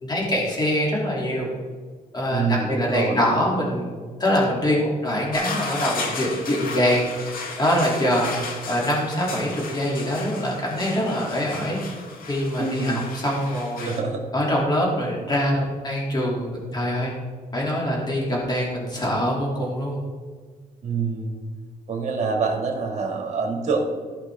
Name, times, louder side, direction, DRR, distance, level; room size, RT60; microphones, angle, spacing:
voice 1, 0.0-1.5 2.1-3.9 4.2-7.1 7.6-11.9 12.3-13.9 14.3-17.1 17.5-20.0, equal, 30° left, -3 dB, 2.7 m, -24 dB
voice 2, 2.3-3.2 12.6-13.0 13.8-14.2 20.8-21.4 21.9-23.9, right 4 dB, 50° right, 2 dB, 2.1 m, -25 dB
sound 1, 5.3-14.0, left 4 dB, 75° left, 1.3 m, -34 dB
15.0 x 5.6 x 3.6 m, 1.5 s
cardioid pair, 110°, 15 cm